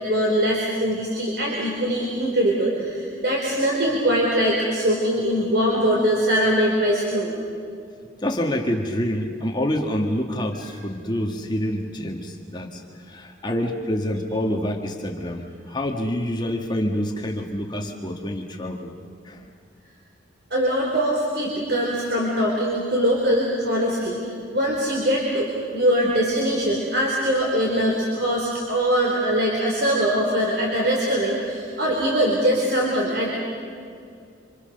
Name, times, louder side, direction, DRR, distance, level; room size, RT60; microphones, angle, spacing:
voice 1, 0.0-7.3 20.5-24.2 24.5-33.5, equal, 55° right, -2 dB, 4.2 m, -22 dB
voice 2, 8.2-18.9 19.2-19.5, equal, 25° left, 2 dB, 1.7 m, -27 dB
27.5 x 27.0 x 6.8 m, 2.4 s
head